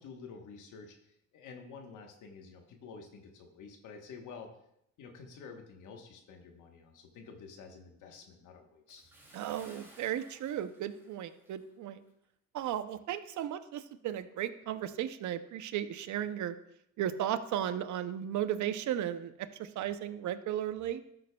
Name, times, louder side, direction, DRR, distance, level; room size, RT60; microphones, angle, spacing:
voice 1, 0.0-4.5 5.0-9.1, left 5 dB, 80° left, 3 dB, 1.2 m, -50 dB
Bathtub (filling or washing) / Splash splatter, 8.9-11.7 12.1-12.2 12.8-12.9, right 1 dB, 10° right, 2.7 m, -58 dB
voice 2, 9.3-12.0 12.5-16.6 17.0-21.0, right 11 dB, 75° right, 12 dB, 0.7 m, -35 dB
12.5 x 7.7 x 2.3 m, 0.76 s
cardioid pair, 90°, 30 cm